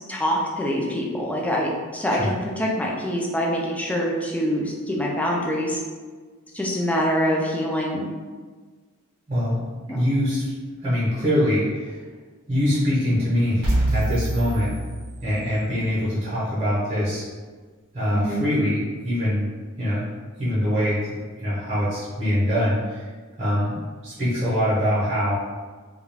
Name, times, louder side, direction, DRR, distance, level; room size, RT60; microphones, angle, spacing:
voice 1, 0.1-5.8 6.5-8.1 9.9-10.1 18.1-18.4, equal, 5° left, -2 dB, 0.4 m, -25 dB
voice 2, 9.3-9.6 9.9-10.5 10.8-12.0 12.5-14.7 15.2-17.3 17.9-18.8 19.0-19.5 19.8-20.1 20.4-23.1 23.4-25.3, equal, 30° right, -10 dB, 0.8 m, -23 dB
sound 1, 13.6-15.7, right 1 dB, 70° right, 0.7 m, -26 dB
2.3 x 2.3 x 3.3 m, 1.4 s
head